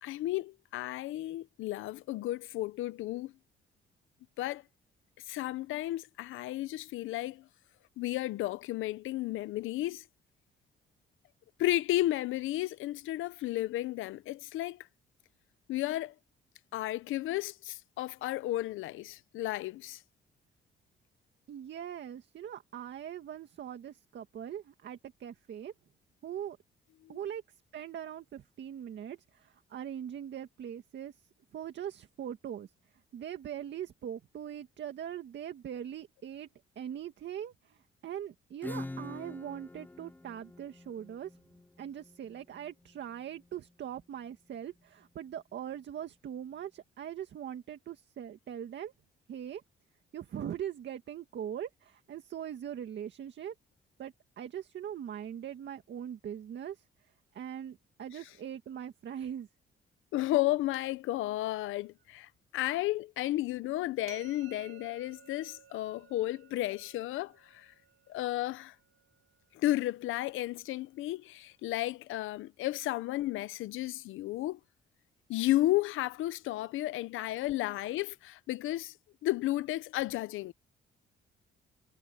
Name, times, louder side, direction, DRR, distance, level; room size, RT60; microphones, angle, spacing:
voice 1, 0.0-3.3 4.4-4.6 5.3-7.5 8.0-10.0 11.6-14.9 15.7-16.1 16.7-20.0 27.0-27.2 60.1-67.7 68.1-68.7 69.5-74.6 75.3-78.9 79.2-80.5, left 16 dB, 85° left, 0.8 m, -33 dB
voice 2, 21.5-25.7 26.2-26.6 27.1-27.4 27.7-31.2 31.5-32.7 33.1-36.5 36.8-41.4 41.8-48.9 49.3-49.6 50.1-53.5 54.0-56.8 57.3-59.5, right 9 dB, 65° right, 1.9 m, -41 dB
Acoustic guitar / Strum, 38.6-44.0, left 2 dB, 10° left, 0.6 m, -46 dB
sound 1, 64.1-69.9, right 10 dB, 80° right, 1.8 m, -57 dB
cardioid pair, 90°, 20 cm